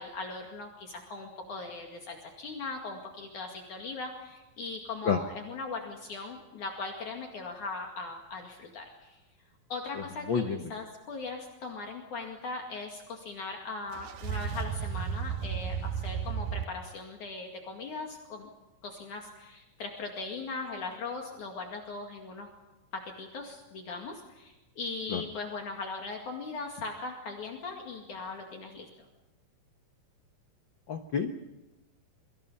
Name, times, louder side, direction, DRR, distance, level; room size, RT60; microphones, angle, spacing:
voice 1, 0.0-9.2 9.7-10.4 10.7-18.5 18.8-22.5 22.9-28.9, left 3 dB, 60° left, 2 dB, 3.5 m, -39 dB
voice 2, 10.3-10.7 25.1-25.2 30.9-31.3, left 6 dB, 85° left, 6 dB, 1.0 m, -29 dB
sound 1, 13.9-16.6, right 7 dB, 75° right, 2.8 m, -33 dB
28.0 x 24.5 x 5.6 m, 1.1 s
omnidirectional pair, 4.1 m